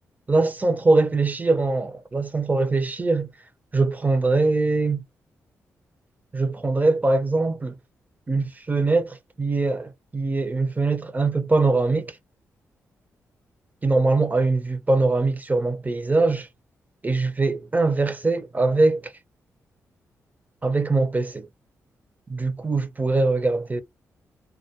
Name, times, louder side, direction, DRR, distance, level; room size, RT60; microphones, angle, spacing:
voice 1, 0.3-3.3 3.7-5.0 6.3-7.7 8.3-12.2 13.8-16.5 17.0-19.1 20.6-21.5 22.3-23.8, right 3 dB, 25° right, 0.6 m, -22 dB
2.3 x 2.1 x 2.8 m
supercardioid pair, 45°, 7 cm